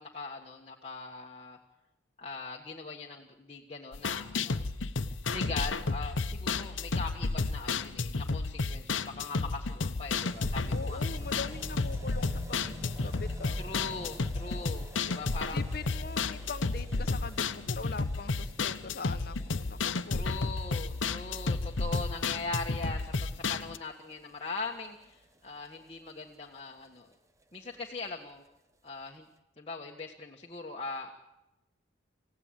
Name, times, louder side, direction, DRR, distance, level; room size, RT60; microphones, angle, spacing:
voice 1, 0.0-1.6 2.2-4.7 5.3-11.0 13.6-15.7 20.1-27.1 27.5-28.4 28.8-29.3 29.6-31.1, left 3 dB, 30° left, -1 dB, 1.6 m, -41 dB
sound 1, 3.9-23.8, left 3 dB, 85° left, 0.9 m, -32 dB
sound 2, 10.1-26.9 27.1-27.2 27.4-27.5 27.7-27.8 28.1-28.2 28.9-29.0, equal, 15° right, 0.9 m, -48 dB
voice 2, 10.7-13.6 15.5-20.2, left 4 dB, 55° left, 10 dB, 0.9 m, -42 dB
26.5 x 16.5 x 9.0 m, 1.0 s
head